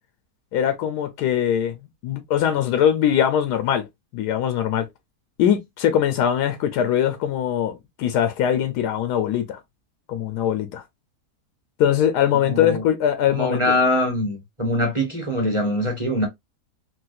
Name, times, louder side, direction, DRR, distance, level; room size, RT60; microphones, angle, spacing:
voice 1, 0.5-1.7 2.0-3.8 4.1-4.9 5.4-9.6 10.1-10.8 11.8-13.6, left 9 dB, 90° left, 1.2 m, -21 dB
voice 2, 12.4-12.8 13.3-16.3, left 1 dB, 25° right, 0.9 m, -23 dB
4.0 x 2.2 x 2.5 m
omnidirectional pair, 1.7 m